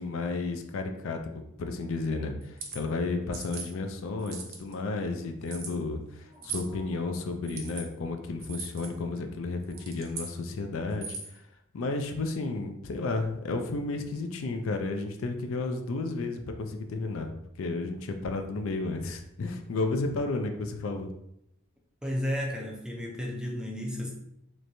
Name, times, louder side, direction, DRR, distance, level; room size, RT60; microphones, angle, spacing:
voice 1, 0.0-11.4 11.7-17.3 17.6-21.1, left 3 dB, 65° left, 6 dB, 0.4 m, -32 dB
sound 1, 2.4-2.8 3.3-3.7 4.2-4.7 5.5-5.7 6.4-6.7 7.4-7.8 8.4-8.9 9.6-10.3 10.9-11.4, right 5 dB, 45° right, 0.6 m, -39 dB
voice 2, 4.3-4.7 6.3-6.8 22.0-24.1, equal, 5° right, -2 dB, 0.4 m, -34 dB
3.2 x 3.1 x 2.6 m, 0.79 s
head